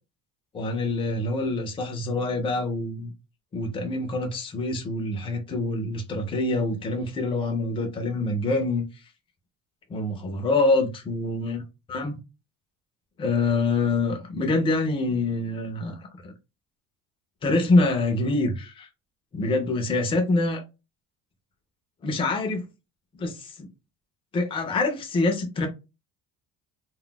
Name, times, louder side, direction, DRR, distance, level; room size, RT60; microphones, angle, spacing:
voice 1, 0.5-3.1 3.5-8.8 9.9-11.6 11.9-12.2 13.2-16.3 17.4-18.9 19.3-20.6 22.0-22.6 23.2-23.7 24.3-25.7, left 2 dB, 20° left, 0.4 m, -25 dB
2.3 x 2.1 x 3.7 m
cardioid pair, 175°, 30 cm